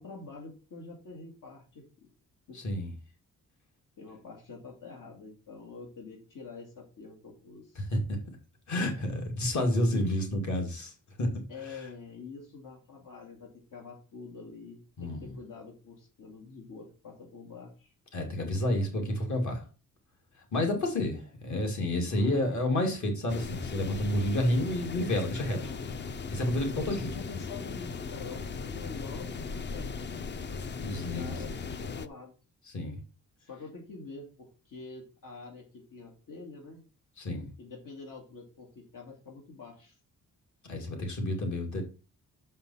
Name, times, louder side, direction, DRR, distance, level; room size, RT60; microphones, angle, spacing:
voice 1, 0.0-2.1 2.5-2.6 4.0-7.9 11.5-17.9 22.0-22.6 25.6-26.2 26.5-30.0 30.9-32.4 33.4-36.8 37.6-40.0, left 4 dB, 80° left, 2.2 m, -46 dB
voice 2, 2.5-2.9 7.8-8.0 8.7-10.9 11.2-11.8 15.0-15.3 18.1-19.6 20.5-25.6 26.3-27.1 30.8-31.4 32.7-33.0 37.2-37.5 40.6-41.8, left 1 dB, 60° left, 2.5 m, -30 dB
sound 1, 23.3-32.1, left 5 dB, 35° left, 0.5 m, -38 dB
6.7 x 5.7 x 5.6 m
wide cardioid pair, 150°, 32 cm